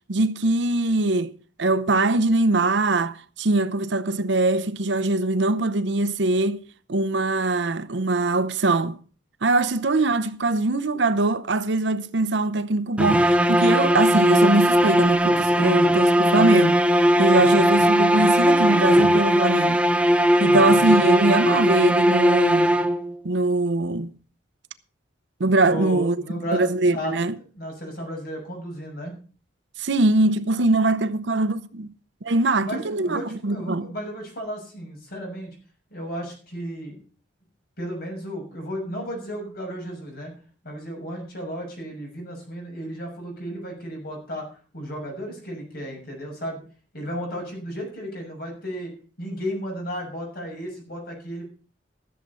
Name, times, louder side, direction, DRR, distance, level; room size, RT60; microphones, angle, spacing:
voice 1, 0.1-1.3 1.6-6.6 6.9-9.0 9.4-16.8 17.2-19.8 20.4-22.7 23.2-24.1 25.4-26.1 26.5-27.3 29.8-31.9 32.2-33.9, right 2 dB, 70° right, 0.7 m, -22 dB
sound 1, 13.0-23.2, equal, 5° right, 0.5 m, -19 dB
voice 2, 17.4-17.7 20.4-21.0 25.6-27.1 27.5-29.1 32.6-35.5 35.9-37.0 37.8-40.3 40.6-44.4 44.7-46.6 46.9-48.9 49.2-51.4, equal, 55° left, 6.6 m, -34 dB
14.0 x 7.5 x 5.5 m
head